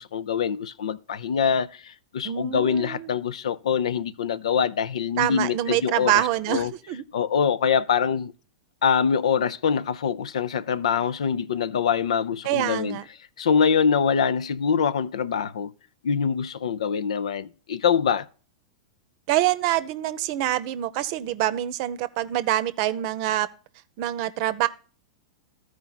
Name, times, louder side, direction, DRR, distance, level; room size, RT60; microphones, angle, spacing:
voice 1, 0.0-6.7 7.1-8.3 8.8-13.0 13.4-15.7 16.0-18.3, left 7 dB, 80° left, 0.5 m, -24 dB
voice 2, 2.2-3.1 5.2-7.0 12.4-13.0 19.3-23.5 24.0-24.7, right 13 dB, 50° right, 0.7 m, -25 dB
13.5 x 4.7 x 3.9 m
hypercardioid pair, 115°, 3 cm